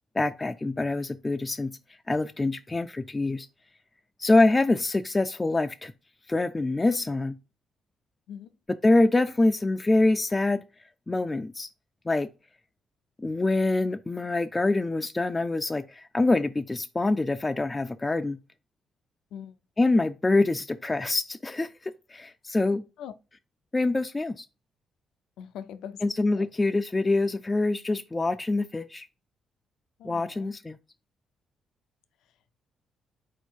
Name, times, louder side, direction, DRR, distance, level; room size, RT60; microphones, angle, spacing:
voice 1, 0.2-1.7 2.1-3.5 4.2-5.9 6.3-7.4 8.8-10.6 11.1-11.7 12.1-12.3 13.2-18.4 19.8-22.8 23.7-24.4 26.0-29.1 30.0-30.8, left 2 dB, 20° left, 0.3 m, -25 dB
voice 2, 25.4-26.0 26.4-26.5 30.0-30.6, left 8 dB, 85° left, 0.4 m, -41 dB
4.1 x 2.7 x 4.5 m
cardioid pair, 90°, 0 cm